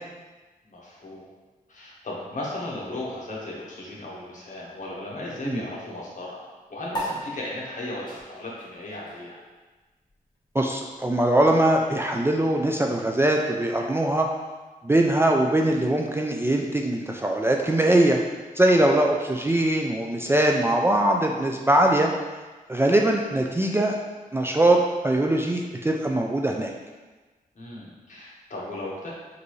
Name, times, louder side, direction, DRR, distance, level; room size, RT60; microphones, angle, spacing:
voice 1, 0.6-1.2 1.7-9.4 18.7-18.9 27.5-29.1, left 1 dB, 55° left, -4 dB, 1.2 m, -36 dB
sound 1, 6.9-13.7, right 1 dB, 30° left, 1.2 m, -40 dB
voice 2, 10.5-14.3 14.8-18.2 18.6-22.1 22.7-24.0 24.3-24.8 25.0-26.7, right 1 dB, 15° right, 1 dB, 0.4 m, -21 dB
5.2 x 2.7 x 3.1 m, 1.3 s
wide cardioid pair, 80°, 15 cm